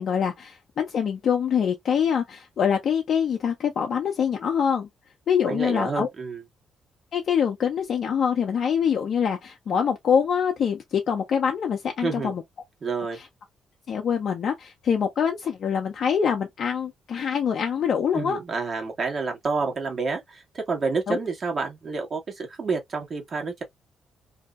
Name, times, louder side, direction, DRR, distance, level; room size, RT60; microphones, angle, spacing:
voice 1, 0.0-4.9 5.3-6.1 7.1-12.4 13.9-18.4 21.1-21.2, left 7 dB, 65° left, 0.5 m, -24 dB
voice 2, 5.4-6.4 12.0-12.3 12.8-13.2 18.1-23.6, right 4 dB, 50° right, 1.2 m, -29 dB
2.7 x 2.0 x 2.3 m
supercardioid pair, 55°, 0 cm